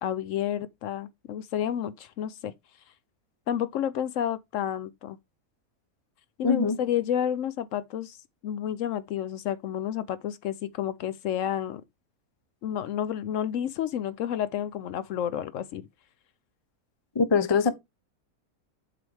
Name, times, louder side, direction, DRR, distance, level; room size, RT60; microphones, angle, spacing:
voice 1, 0.0-2.5 3.5-5.2 6.4-8.2 8.4-11.8 12.6-15.8, left 10 dB, 70° left, 0.9 m, -30 dB
voice 2, 6.4-6.8 17.1-17.7, left 5 dB, 40° left, 0.4 m, -23 dB
7.6 x 4.9 x 3.4 m
omnidirectional pair, 1.5 m